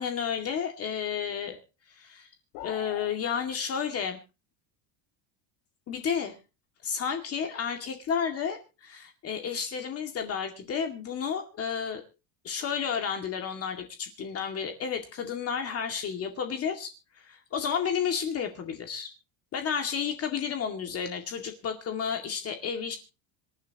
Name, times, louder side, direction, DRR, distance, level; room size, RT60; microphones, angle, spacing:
voice 1, 0.0-1.6 1.9-2.3 2.6-4.2 5.9-6.4 6.8-12.0 12.4-19.1 19.5-23.0, left 7 dB, 35° left, 5 dB, 2.2 m, -32 dB
sound 1, 2.5-3.1, left 9 dB, 65° left, 4.4 m, -41 dB
26.0 x 10.5 x 2.9 m, 0.32 s
cardioid pair, 165°, 43 cm